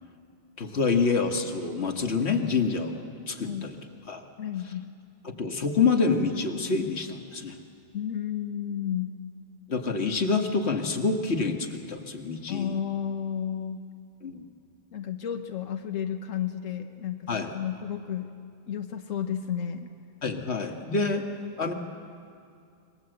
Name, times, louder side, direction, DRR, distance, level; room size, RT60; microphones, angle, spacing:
voice 1, 0.6-3.7 4.1-4.2 5.2-7.6 9.7-12.7 14.2-14.5 17.3-17.5 20.2-21.2 21.6-21.7, left 4 dB, 55° left, 4 dB, 1.8 m, -27 dB
voice 2, 4.4-4.9 7.9-9.1 12.5-13.8 14.9-18.3 18.7-19.9, left 9 dB, 85° left, 6 dB, 1.3 m, -32 dB
25.5 x 21.0 x 7.8 m, 2.4 s
omnidirectional pair, 1.3 m